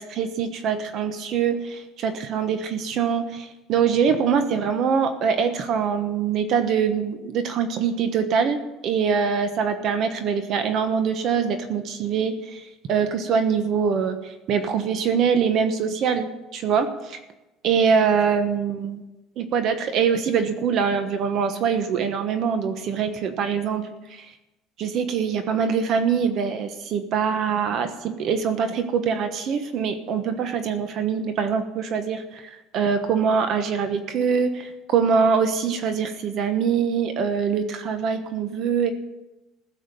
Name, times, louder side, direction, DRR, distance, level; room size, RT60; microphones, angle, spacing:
voice 1, 0.0-17.2 17.6-19.0 19.4-24.3 24.8-38.9, right 6 dB, 45° right, 9 dB, 1.1 m, -24 dB
15.5 x 7.3 x 8.4 m, 1.0 s
cardioid pair, 160°, 0 cm